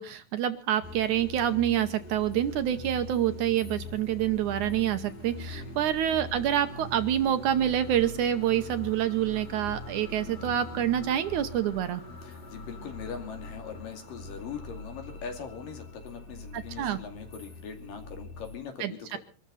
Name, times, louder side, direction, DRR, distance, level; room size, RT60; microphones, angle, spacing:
voice 1, 0.0-12.0 16.5-17.0 18.8-19.2, right 11 dB, 70° right, 10 dB, 2.1 m, -27 dB
sound 1, 0.8-18.6, left 2 dB, 30° left, 2.8 m, -43 dB
voice 2, 5.4-5.7 12.2-19.2, left 6 dB, 75° left, 5 dB, 4.1 m, -41 dB
25.0 x 13.0 x 4.1 m, 0.38 s
omnidirectional pair, 4.0 m